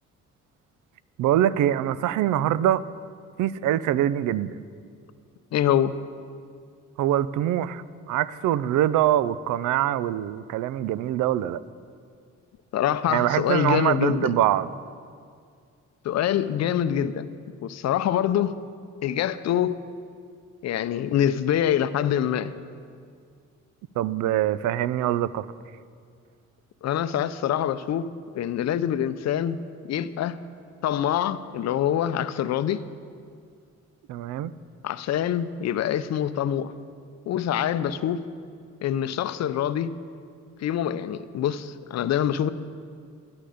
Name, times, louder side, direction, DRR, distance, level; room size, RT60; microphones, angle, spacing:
voice 1, 1.2-2.9 3.4-4.6 7.0-11.6 13.1-14.7 24.0-25.5 34.1-34.5, right 12 dB, 80° right, 0.5 m, -24 dB
voice 2, 5.5-6.0 12.7-14.4 16.0-17.3 17.6-18.6 19.0-19.8 20.6-22.5 26.8-28.1 28.3-29.6 29.9-30.4 30.8-32.8 34.8-36.7 37.3-38.2 38.8-40.0 40.6-42.5, left 10 dB, 60° left, 0.6 m, -25 dB
11.5 x 11.5 x 5.0 m
cardioid pair, 90°, 30 cm